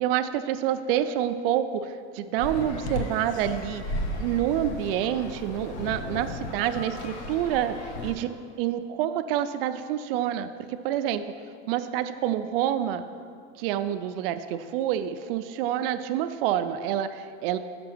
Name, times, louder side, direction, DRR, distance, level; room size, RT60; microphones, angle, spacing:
voice 1, 0.0-3.8 4.2-8.3 8.6-11.2 11.7-13.0 13.6-17.6, right 11 dB, 55° right, 10 dB, 0.4 m, -27 dB
sound 1, 2.4-8.1, left 1 dB, 75° left, 1.1 m, -35 dB
5.9 x 5.6 x 6.1 m, 2.3 s
supercardioid pair, 165°, 34 cm